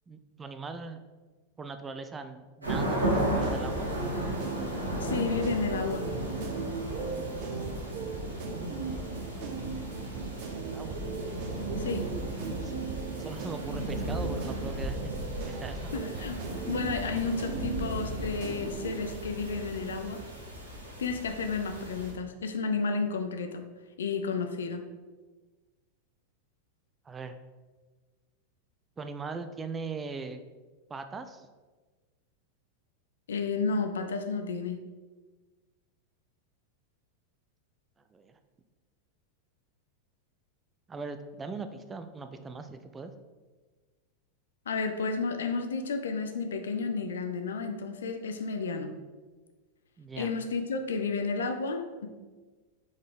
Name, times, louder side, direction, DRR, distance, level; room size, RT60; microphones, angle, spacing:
voice 1, 0.1-1.0 1.6-3.9 8.6-9.2 9.8-11.0 12.6-12.7 13.2-15.1 15.5-16.0 27.1-27.4 29.0-30.4 30.9-31.5 38.1-38.4 40.9-43.1 50.0-50.3, right 4 dB, 15° right, 8 dB, 0.4 m, -40 dB
sound 1, 2.6-22.1, right 1 dB, 80° right, 2.0 m, -35 dB
sound 2, 2.9-18.9, right 4 dB, 45° right, 0.8 m, -39 dB
voice 2, 5.0-6.1 11.8-12.1 15.9-16.4 16.7-20.2 21.0-23.7 24.0-24.8 33.3-34.8 44.7-48.9 50.2-52.1, left 4 dB, 65° left, 7 dB, 0.6 m, -32 dB
5.3 x 4.0 x 4.9 m, 1.3 s
figure-of-eight pair, 90°, 0 cm